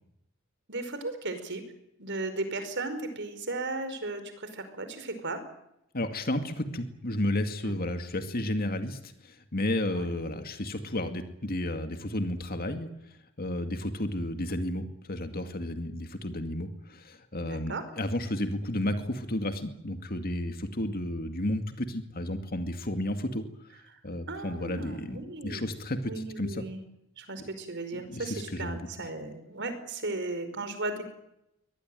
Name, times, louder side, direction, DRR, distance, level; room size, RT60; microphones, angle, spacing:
voice 1, 0.7-1.6 2.0-5.4 7.6-7.7 9.9-10.1 17.4-17.8 24.3-25.7 26.1-26.8 27.2-31.0, right 2 dB, 55° right, 10 dB, 5.0 m, -36 dB
voice 2, 5.9-23.4 23.7-26.7 27.4-27.5 27.9-29.1, left 1 dB, 45° left, 7 dB, 2.3 m, -32 dB
24.0 x 19.0 x 9.2 m, 0.81 s
head